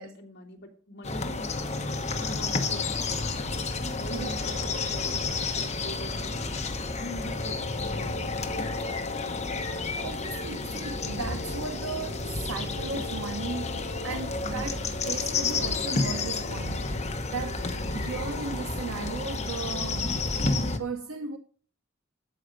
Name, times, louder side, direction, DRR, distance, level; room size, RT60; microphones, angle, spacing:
voice 1, 0.0-1.6 2.1-3.3 4.0-6.5 6.9-8.6, equal, 50° left, 2.3 m, -43 dB
sound 1, 1.0-20.8, left 3 dB, 30° left, 1.1 m, -31 dB
voice 2, 10.0-17.0 17.3-17.7 17.9-20.1 20.8-21.4, right 4 dB, 85° right, 0.8 m, -36 dB
13.0 x 4.9 x 5.1 m
head